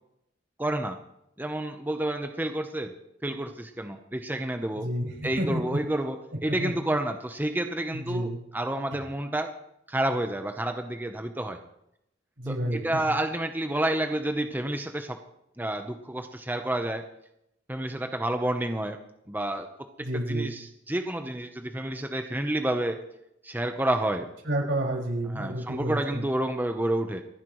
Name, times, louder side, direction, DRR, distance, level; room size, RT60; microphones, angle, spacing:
voice 1, 0.6-1.0 1.4-2.9 3.2-4.9 5.2-9.6 9.9-11.6 12.5-15.2 15.6-17.0 17.7-19.0 19.3-19.7 20.0-23.0 23.4-24.3 25.3-27.2, right 1 dB, 10° right, 5 dB, 0.8 m, -29 dB
voice 2, 4.8-5.8 6.5-6.7 7.9-8.4 12.4-13.0 20.0-20.5 24.5-26.3, right 1 dB, 80° right, -2 dB, 5.6 m, -30 dB
29.5 x 10.0 x 3.1 m, 0.79 s
head